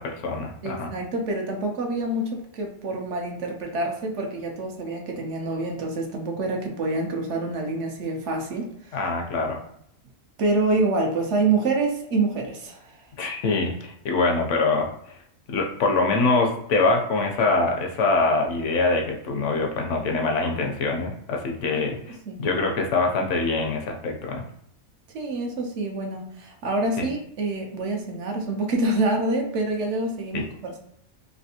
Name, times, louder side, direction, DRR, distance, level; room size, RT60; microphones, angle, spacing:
voice 1, 0.0-0.9 8.9-9.6 13.2-15.2 15.5-24.4 27.0-27.1 30.3-30.4, left 3 dB, 70° left, 2 dB, 0.9 m, -24 dB
voice 2, 0.6-8.7 10.4-12.8 21.7-21.8 22.3-22.4 25.1-30.8, right 2 dB, 65° right, 1 dB, 0.9 m, -26 dB
3.2 x 2.5 x 2.7 m, 0.72 s
omnidirectional pair, 1.4 m